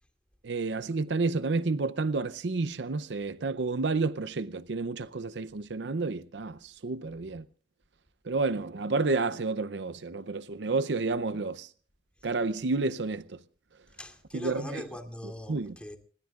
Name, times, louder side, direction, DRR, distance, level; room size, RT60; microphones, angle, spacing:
voice 1, 0.4-7.4 8.2-11.7 12.2-13.4 14.3-14.8 15.5-15.8, right 3 dB, 80° right, 0.6 m, -30 dB
voice 2, 13.9-16.0, left 1 dB, 5° left, 2.5 m, -41 dB
26.0 x 21.0 x 2.5 m
head